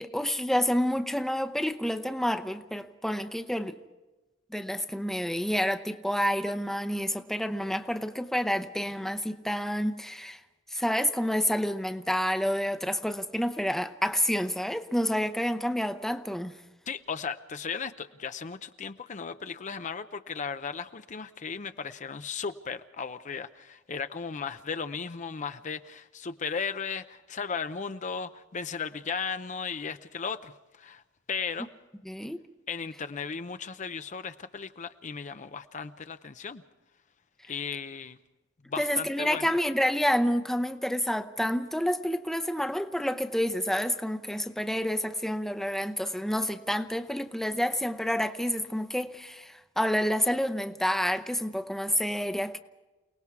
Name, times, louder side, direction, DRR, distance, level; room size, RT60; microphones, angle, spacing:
voice 1, 0.0-3.8 4.5-10.4 10.7-16.6 32.1-32.4 38.8-52.6, equal, ahead, 9 dB, 0.8 m, -29 dB
voice 2, 16.9-31.0 31.3-31.7 32.7-36.6 37.5-38.2 38.7-39.5, left 5 dB, 40° left, 10 dB, 0.6 m, -36 dB
29.0 x 19.0 x 4.7 m, 1.1 s
head